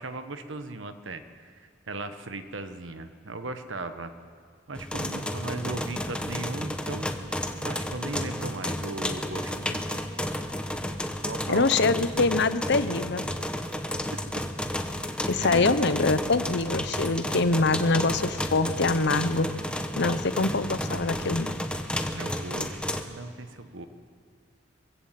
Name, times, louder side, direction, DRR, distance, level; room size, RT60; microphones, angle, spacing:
voice 1, 0.0-4.1 4.7-7.1 7.6-10.0 11.2-12.0 15.4-15.7 22.0-22.8 23.1-23.9, right 2 dB, 75° right, 9 dB, 1.3 m, -37 dB
sound 1, 4.7-23.0, left 1 dB, 5° left, 1.0 m, -32 dB
voice 2, 11.5-13.3 15.3-19.5 20.0-21.5, left 3 dB, 60° left, 12 dB, 0.9 m, -24 dB
23.0 x 15.5 x 7.6 m, 2.1 s
head